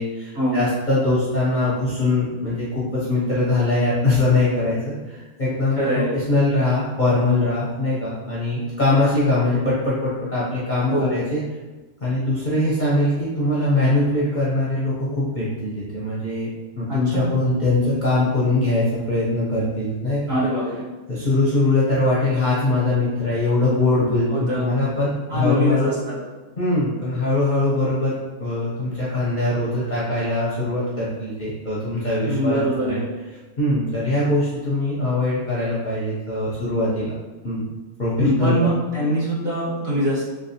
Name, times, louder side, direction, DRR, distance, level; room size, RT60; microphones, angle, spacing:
voice 1, 0.0-5.8 6.1-11.4 12.0-16.5 16.8-20.4 21.1-25.9 26.6-28.1 28.4-33.0 33.6-37.1 37.4-37.7 38.0-38.6, left 2 dB, 40° left, -9 dB, 0.7 m, -22 dB
voice 2, 5.7-6.1 10.9-11.2 16.9-17.3 20.3-20.9 24.3-24.7 25.3-26.2 32.2-33.0 38.2-40.2, equal, 45° right, -9 dB, 1.5 m, -23 dB
3.3 x 3.0 x 2.8 m, 1.2 s
omnidirectional pair, 1.5 m